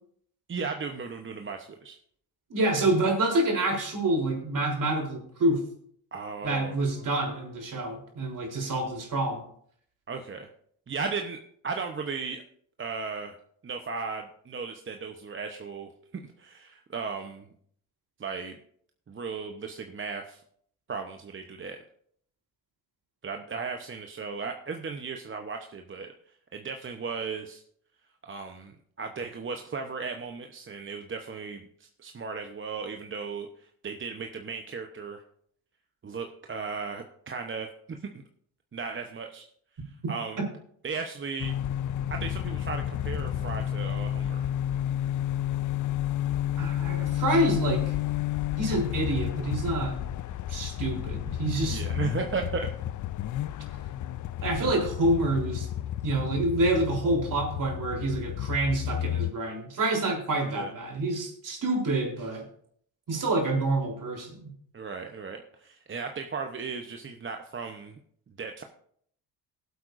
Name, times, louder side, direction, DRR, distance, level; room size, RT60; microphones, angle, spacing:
voice 1, 0.5-2.0 6.1-6.8 10.1-10.5 10.9-11.4 11.6-12.4 12.8-13.4 13.6-17.5 18.2-18.6 19.1-20.4 20.9-21.8 23.2-26.1 26.5-27.6 28.2-35.2 36.0-38.0 38.7-39.5 40.1-40.4 40.8-41.6 42.1-44.5 51.6-52.7 60.4-60.7 64.7-68.0 68.4-68.6, right 5 dB, 30° right, 4 dB, 0.9 m, -36 dB
voice 2, 2.5-5.6 6.4-9.4 40.4-40.5 46.6-48.0 48.6-50.0 50.5-51.8 54.4-55.7 56.0-62.4 63.1-64.5, right 2 dB, 50° right, 0 dB, 3.7 m, -27 dB
sound 1, 41.4-59.3, left 12 dB, 50° left, 0.5 m, -31 dB
18.5 x 8.1 x 2.6 m, 0.63 s
cardioid pair, 85°, 39 cm